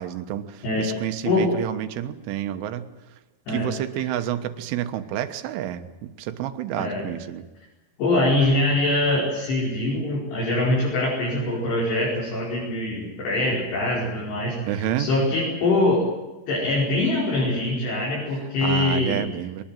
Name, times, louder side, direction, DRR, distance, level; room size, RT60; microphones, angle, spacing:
voice 1, 0.0-2.9 3.5-7.5 14.7-15.1 18.6-19.6, right 11 dB, 80° right, 9 dB, 3.7 m, -29 dB
voice 2, 8.0-16.0 16.5-19.2, left 2 dB, 55° left, -5 dB, 7.3 m, -23 dB
23.5 x 19.5 x 9.1 m, 1.1 s
omnidirectional pair, 5.7 m